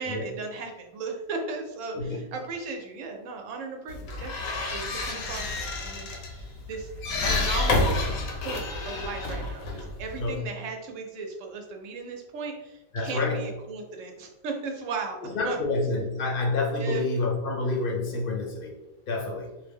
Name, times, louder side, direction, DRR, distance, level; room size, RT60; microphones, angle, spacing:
voice 1, 0.0-6.9 7.2-8.1 8.3-15.6 16.7-17.0, right 4 dB, 75° right, 3 dB, 0.9 m, -36 dB
sound 1, 3.9-10.4, left 2 dB, 85° left, 1.1 m, -29 dB
voice 2, 12.9-13.5 15.2-18.7 19.1-19.5, left 3 dB, 55° left, 0 dB, 0.6 m, -28 dB
2.4 x 2.1 x 3.4 m, 0.99 s
omnidirectional pair, 1.4 m